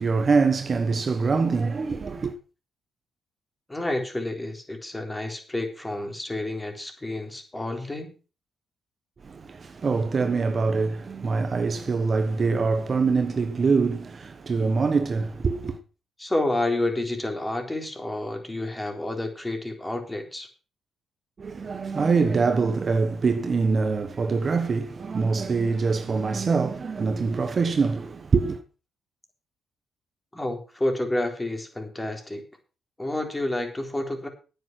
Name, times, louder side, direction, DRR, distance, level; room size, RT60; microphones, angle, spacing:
voice 1, 0.0-2.3 9.2-15.8 21.4-28.6, right 4 dB, 40° right, 1.2 m, -24 dB
voice 2, 3.7-8.1 16.2-20.5 30.3-32.4 33.0-34.3, left 1 dB, 15° left, 3.8 m, -29 dB
9.3 x 9.2 x 6.1 m
cardioid pair, 90°, 0 cm